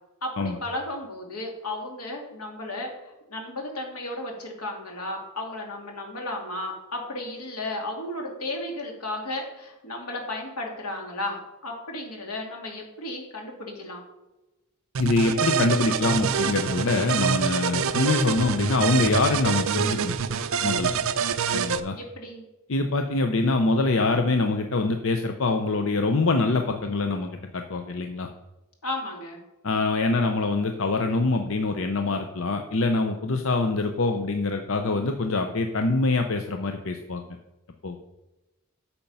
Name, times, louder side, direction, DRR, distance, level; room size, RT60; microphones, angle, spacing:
voice 1, 0.2-14.0 21.9-22.4 28.8-29.4, left 1 dB, 85° left, 1 dB, 2.4 m, -34 dB
sound 1, 14.9-21.8, right 6 dB, 65° right, 0.5 m, -26 dB
voice 2, 15.0-20.1 20.6-20.9 21.5-22.0 22.7-28.3 29.6-37.2 37.8-38.0, left 3 dB, 60° left, 5 dB, 0.7 m, -24 dB
8.7 x 6.8 x 5.5 m, 1.0 s
head